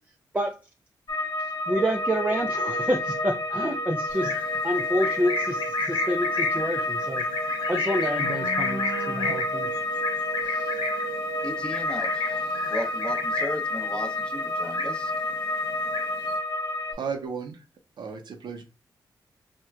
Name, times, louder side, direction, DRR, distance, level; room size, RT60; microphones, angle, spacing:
sound 1, 1.1-16.9, left 2 dB, 50° left, 1.0 m, -30 dB
sound 2, 1.7-17.3, right 9 dB, 90° left, 0.5 m, -41 dB
voice 1, 1.7-4.3 4.6-7.2 7.7-9.7 10.4-10.7, equal, 15° right, 2 dB, 0.4 m, -28 dB
Livestock farm animals working animals, 4.1-13.7 14.0-14.4 14.6-15.3 15.6-16.3, left 3 dB, 70° left, 0.9 m, -31 dB
voice 2, 11.4-15.1, left 1 dB, 10° left, 3 dB, 0.8 m, -35 dB
voice 3, 16.9-17.6 18.0-18.6, right 6 dB, 70° right, 6 dB, 0.5 m, -34 dB
4.3 x 2.1 x 2.3 m, 0.32 s
cardioid pair, 85°, 8 cm